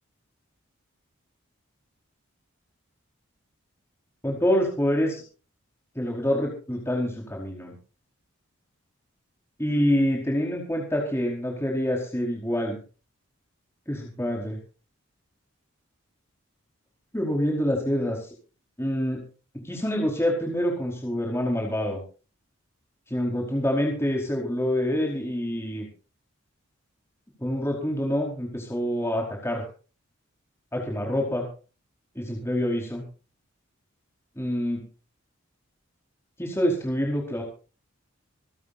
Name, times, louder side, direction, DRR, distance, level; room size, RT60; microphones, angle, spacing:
voice 1, 4.2-5.2 5.9-7.7 9.6-12.8 13.9-14.6 17.1-18.3 18.8-19.3 19.5-22.0 23.1-25.9 27.4-29.7 30.7-31.5 32.1-33.0 34.4-34.8 36.4-37.4, equal, 10° left, -1 dB, 4.7 m, -26 dB
27.5 x 13.0 x 2.7 m, 0.36 s
head